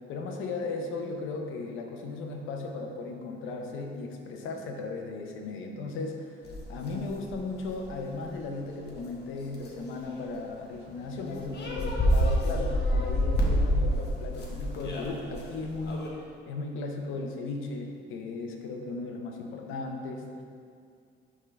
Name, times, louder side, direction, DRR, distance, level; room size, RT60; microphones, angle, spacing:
voice 1, 0.1-6.4 6.7-20.4, left 3 dB, 90° left, 2 dB, 0.8 m, -36 dB
sound 1, 6.4-7.9 8.4-8.5 8.9-9.1 9.5-9.8 11.0-11.1 11.3-16.1, equal, 55° left, 1.2 m, -28 dB
11.0 x 3.7 x 3.3 m, 2.3 s
cardioid pair, 90°, 20 cm